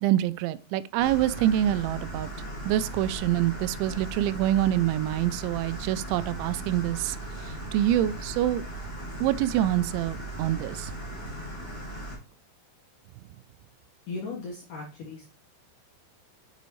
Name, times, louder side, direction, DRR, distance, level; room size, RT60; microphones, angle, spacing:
voice 1, 0.0-2.3 2.7-7.2 7.7-8.6 9.2-10.9, right 13 dB, 85° right, 2.7 m, -26 dB
sound 1, 1.0-12.2, right 1 dB, 10° left, 2.3 m, -37 dB
voice 2, 14.1-15.2, left 3 dB, 70° left, 2.0 m, -37 dB
6.9 x 6.8 x 3.1 m
omnidirectional pair, 5.6 m